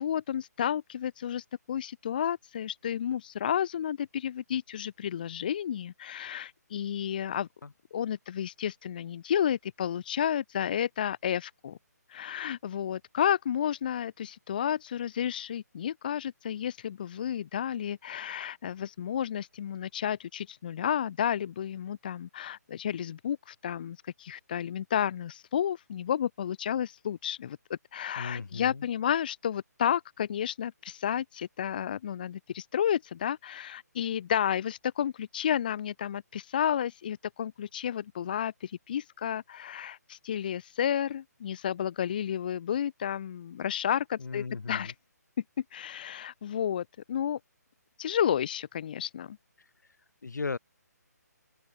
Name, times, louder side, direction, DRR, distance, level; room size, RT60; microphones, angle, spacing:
voice 1, 0.0-7.5 7.9-11.8 12.1-44.9 45.7-47.4 48.0-49.4, left 9 dB, 30° left, 0.6 m, -31 dB
voice 2, 28.2-28.8 44.2-44.9 50.2-50.6, left 4 dB, 80° left, 6.2 m, -36 dB
open air
hypercardioid pair, 170°, 9 cm